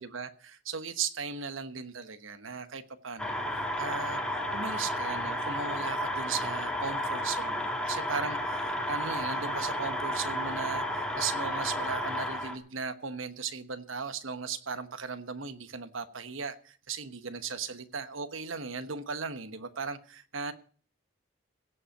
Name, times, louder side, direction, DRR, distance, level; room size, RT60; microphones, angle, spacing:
voice 1, 0.0-3.4 3.8-4.2 4.5-20.5, right 5 dB, 80° right, 1.1 m, -37 dB
sound 1, 3.2-12.6, equal, 5° left, 1.4 m, -32 dB
16.5 x 5.6 x 8.9 m
head